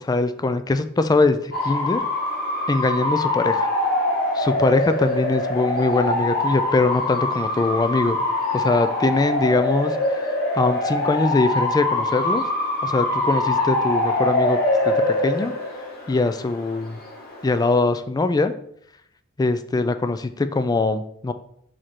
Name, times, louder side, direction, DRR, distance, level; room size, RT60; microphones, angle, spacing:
voice 1, 0.0-2.0 2.7-3.7 4.3-8.2 8.5-10.0 10.5-12.4 12.8-14.6 14.9-15.5 16.1-17.0 17.4-18.5 19.4-21.3, left 3 dB, 20° left, 11 dB, 0.3 m, -22 dB
Bark / Motor vehicle (road) / Siren, 1.5-17.8, left 2 dB, 50° left, 1.5 m, -24 dB
4.9 x 4.3 x 4.4 m, 0.69 s
head